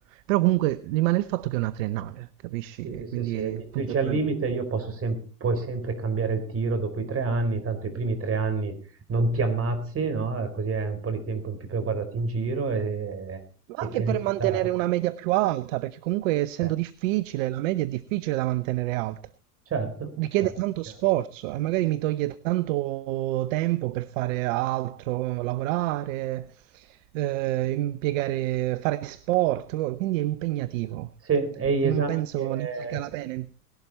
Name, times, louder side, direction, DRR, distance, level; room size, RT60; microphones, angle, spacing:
voice 1, 0.1-4.2 13.7-19.2 20.2-31.1 31.8-33.5, right 17 dB, 55° right, 0.8 m, -27 dB
voice 2, 2.8-8.7 9.1-13.4 13.8-14.6 16.6-16.7 19.7-20.1 20.4-20.5 31.2-33.0, right 4 dB, 30° right, 4.7 m, -28 dB
18.5 x 12.0 x 4.3 m
hypercardioid pair, 90°, 46 cm